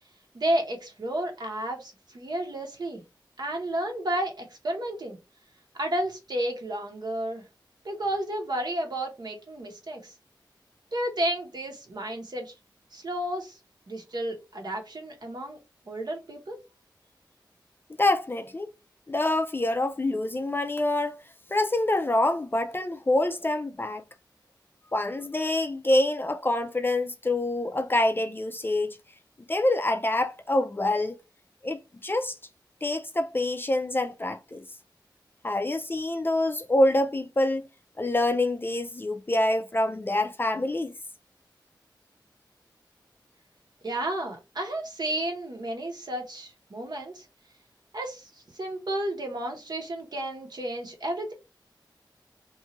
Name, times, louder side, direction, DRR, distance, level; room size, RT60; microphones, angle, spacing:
voice 1, 0.3-3.0 3.4-5.2 5.7-7.4 7.8-10.1 10.9-12.5 12.9-13.6 13.9-15.6 15.9-16.6 43.8-47.3 47.9-51.3, right 1 dB, 60° right, 0.9 m, -32 dB
voice 2, 18.0-18.7 19.1-21.2 21.5-24.0 24.9-29.0 29.5-31.2 31.6-32.3 32.8-34.7 35.4-37.6 38.0-40.9, left 1 dB, 25° left, 0.3 m, -26 dB
2.6 x 2.4 x 2.9 m
wide cardioid pair, 85°, 8 cm